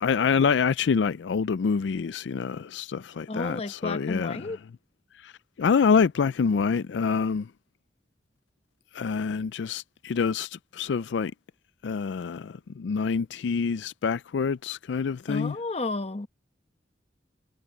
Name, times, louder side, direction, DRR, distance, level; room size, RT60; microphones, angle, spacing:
voice 1, 0.0-4.5 5.2-5.3 5.6-7.5 8.9-11.3 11.8-15.5, left 5 dB, 90° left, 0.4 m, -26 dB
voice 2, 3.3-4.6 15.3-16.3, left 2 dB, 35° left, 1.0 m, -32 dB
head